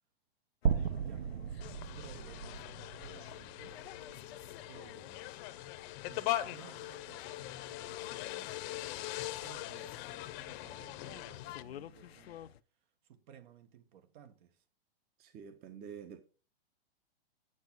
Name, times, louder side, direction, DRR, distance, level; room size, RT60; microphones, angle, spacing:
sound 1, 0.6-12.6, left 11 dB, 80° left, 0.7 m, -54 dB
sound 2, 0.7-4.9, right 7 dB, 75° right, 0.7 m, -36 dB
voice 1, 1.0-1.6 1.9-3.8 4.6-5.3 6.0-8.5 9.0-12.4 13.0-14.6, right 9 dB, 50° right, 1.6 m, -57 dB
sound 3, 1.6-11.6, left 15 dB, 35° left, 0.9 m, -41 dB
voice 2, 15.2-16.3, right 7 dB, 30° right, 1.3 m, -48 dB
9.7 x 6.2 x 6.1 m
hypercardioid pair, 125°, 30 cm